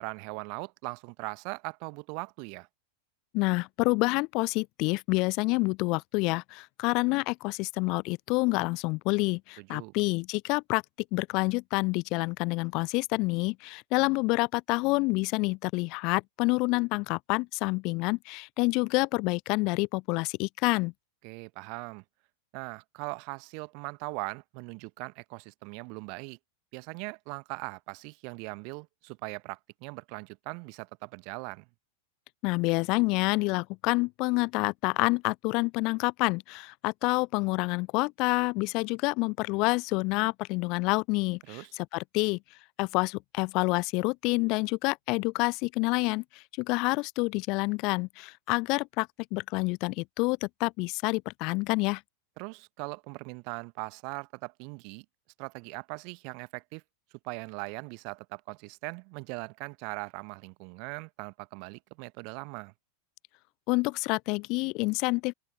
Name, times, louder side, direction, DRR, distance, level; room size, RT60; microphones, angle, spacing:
voice 1, 0.0-2.7 9.6-9.9 21.2-22.0 22.5-26.4 26.7-31.7 41.5-41.7 52.4-55.0 55.4-56.8 57.2-62.7, right 37 dB, 45° right, 1.0 m, -40 dB
voice 2, 3.3-10.8 11.1-20.9 32.4-52.0 63.7-65.3, left 26 dB, 40° left, 0.3 m, -28 dB
open air
figure-of-eight pair, 90°, 0 cm